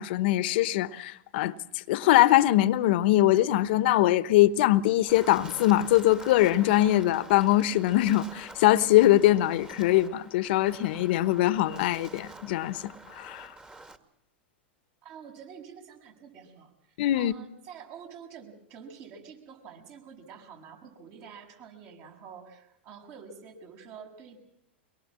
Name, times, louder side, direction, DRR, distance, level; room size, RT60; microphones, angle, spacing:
voice 1, 0.0-1.5 1.9-13.5 17.0-17.3, left 15 dB, 60° left, 1.1 m, -22 dB
Wind, 5.1-14.0, right 2 dB, 15° right, 2.1 m, -47 dB
voice 2, 15.0-24.4, right 6 dB, 45° right, 7.3 m, -48 dB
24.0 x 22.0 x 7.6 m
hypercardioid pair, 110°, 6 cm